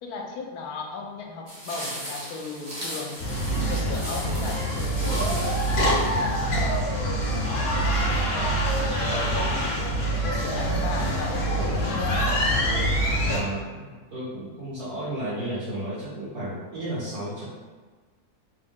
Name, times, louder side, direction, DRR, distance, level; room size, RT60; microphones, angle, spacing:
voice 1, 0.0-3.2 3.6-6.9 7.7-9.7 10.2-12.4, left 4 dB, 80° left, 1 dB, 1.1 m, -36 dB
sound 1, 1.5-6.7, equal, 35° right, 0.9 m, -37 dB
sound 2, 3.2-13.4, right 1 dB, 55° left, 0.8 m, -25 dB
voice 2, 7.3-7.6 13.2-17.4, right 1 dB, 75° right, -12 dB, 1.8 m, -33 dB
3.6 x 2.1 x 3.5 m, 1.4 s
omnidirectional pair, 1.6 m